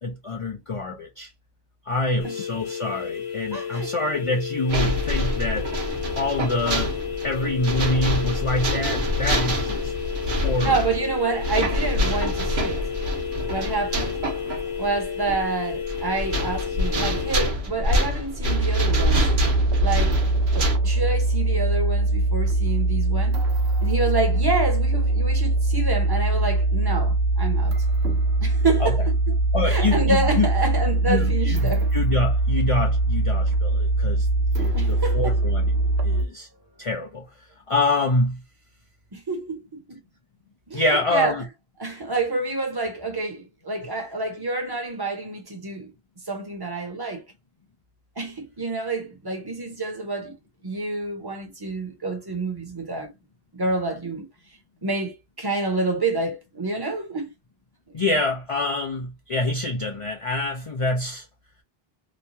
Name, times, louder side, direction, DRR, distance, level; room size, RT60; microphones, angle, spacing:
voice 1, 0.0-1.3 1.9-5.7 6.1-6.9 7.2-9.9 10.2-10.7 28.8-28.9 29.5-30.5 31.1-34.3 34.6-35.7 36.0-36.5 36.8-37.2 37.7-38.4 40.7-41.4 57.9-61.3, left 2 dB, 40° left, 0.5 m, -26 dB
sound 1, 2.2-17.3, left 7 dB, 90° left, 1.1 m, -32 dB
voice 2, 3.5-3.9 10.4-12.9 13.5-14.3 14.8-19.3 19.8-20.2 20.5-23.4 23.8-27.8 28.4-29.4 29.7-31.9 34.7-35.4 39.1-40.0 40.7-41.3 41.8-45.9 46.3-47.2 48.2-50.3 50.6-53.1 53.5-54.3 54.8-57.3 57.9-58.0, right 3 dB, 25° right, 0.9 m, -28 dB
sound 2, 4.7-20.8, equal, 55° right, 1.0 m, -26 dB
sound 3, 18.4-36.2, right 2 dB, 90° right, 1.0 m, -22 dB
3.0 x 2.2 x 2.7 m
omnidirectional pair, 1.0 m